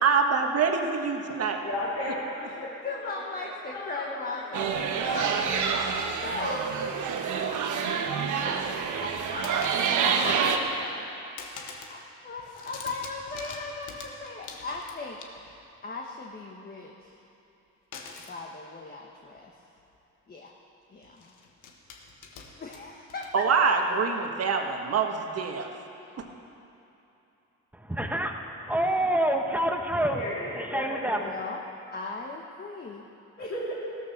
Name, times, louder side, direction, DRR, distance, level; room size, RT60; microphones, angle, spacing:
voice 1, 0.0-1.6 23.3-25.7, right 5 dB, 55° right, 3 dB, 1.6 m, -25 dB
voice 2, 1.6-4.7 30.1-31.4 33.4-33.7, left 1 dB, 55° left, -7 dB, 3.6 m, -35 dB
voice 3, 2.6-5.5 5.8-6.7 7.3-8.0 8.4-8.6 9.0-9.5 9.8-11.6 11.9-17.1 18.3-19.5 20.3-20.5 20.9-21.3 22.6-23.7 31.1-31.6 31.9-33.1 33.4-33.7, left 3 dB, 30° left, 0 dB, 1.3 m, -38 dB
sound 1, 4.5-10.6, right 6 dB, 75° right, 1.3 m, -27 dB
sound 2, 5.9-6.5 7.0-7.9 8.2-8.8 9.4-10.2 10.6-11.1 11.4-12.0 12.3-15.7 17.9-18.4 19.4-19.5 19.8-20.0 21.0-23.7, left 5 dB, 90° left, 1.5 m, -46 dB
voice 4, 27.7-30.2 30.5-31.3, right 1 dB, 5° right, 3 dB, 1.3 m, -27 dB
15.5 x 13.5 x 5.9 m, 2.9 s
cardioid pair, 90°, 30 cm